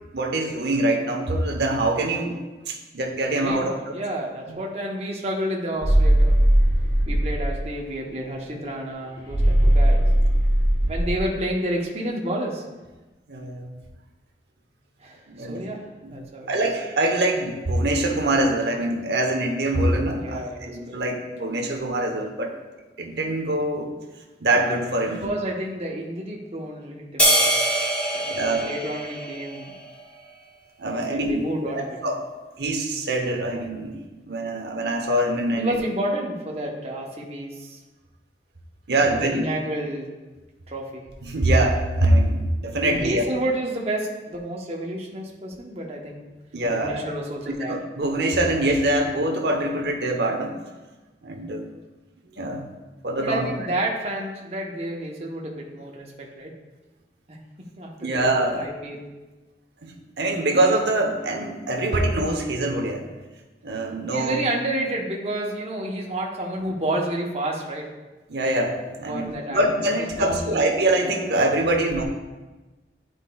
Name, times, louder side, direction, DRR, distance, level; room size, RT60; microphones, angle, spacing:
voice 1, 0.1-2.4 2.7-3.8 13.3-13.7 15.3-15.7 16.0-22.5 23.0-23.9 24.4-25.3 28.3-28.7 30.8-32.3 32.6-34.0 34.3-35.8 38.9-39.4 41.2-43.2 46.5-47.1 47.6-50.6 51.2-51.7 52.3-52.7 53.0-53.5 58.0-58.6 59.8-63.1 63.6-64.4 68.3-72.0, right 1 dB, 70° right, 3 dB, 0.8 m, -24 dB
voice 2, 3.4-6.3 7.1-10.0 10.9-12.6 15.0-15.8 16.1-16.5 20.0-21.0 25.1-27.4 28.1-29.7 31.1-32.0 35.5-37.8 38.9-40.1 40.7-41.0 42.8-46.3 46.7-47.8 53.2-56.5 57.3-59.1 64.1-67.9 69.0-69.6 70.2-70.9, right 1 dB, 35° right, -2 dB, 0.8 m, -30 dB
sound 1, 5.8-7.6 9.3-11.3, right 1 dB, 35° left, 1.8 m, -18 dB
sound 2, 27.2-29.8, right 1 dB, 5° left, 0.9 m, -23 dB
10.0 x 4.4 x 2.3 m, 1.2 s
head